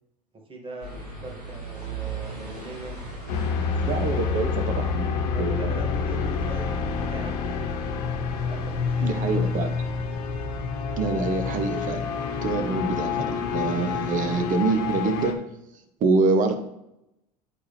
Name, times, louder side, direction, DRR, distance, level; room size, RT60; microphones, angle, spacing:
voice 1, 0.5-3.0 3.8-4.8 5.3-7.3 8.2-9.5, right 1 dB, 25° right, 0 dB, 2.1 m, -41 dB
sound 1, 0.8-15.3, right 3 dB, 90° right, 2.4 m, -42 dB
sound 2, 3.3-15.3, left 5 dB, 65° left, 1.1 m, -28 dB
voice 2, 3.9-5.1 5.4-5.8 9.0-9.7 11.0-12.0 12.4-15.4 16.0-16.5, right 4 dB, 40° right, 8 dB, 1.1 m, -25 dB
8.6 x 4.7 x 3.3 m, 0.86 s
hypercardioid pair, 75°, 20 cm